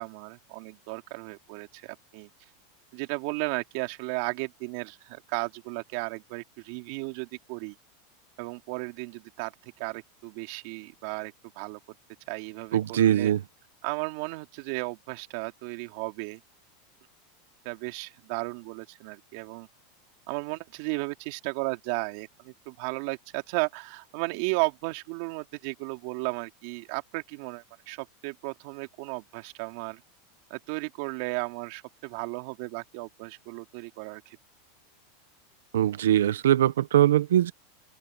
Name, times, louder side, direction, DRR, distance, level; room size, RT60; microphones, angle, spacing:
voice 1, 0.0-2.3 2.9-7.7 8.4-11.8 12.3-13.3 13.8-16.4 17.6-19.7 20.3-30.0 30.5-34.4, right 27 dB, 60° right, 2.7 m, -34 dB
voice 2, 12.7-13.4 35.7-37.5, right 11 dB, 85° right, 1.2 m, -22 dB
open air
hypercardioid pair, 110°, 0 cm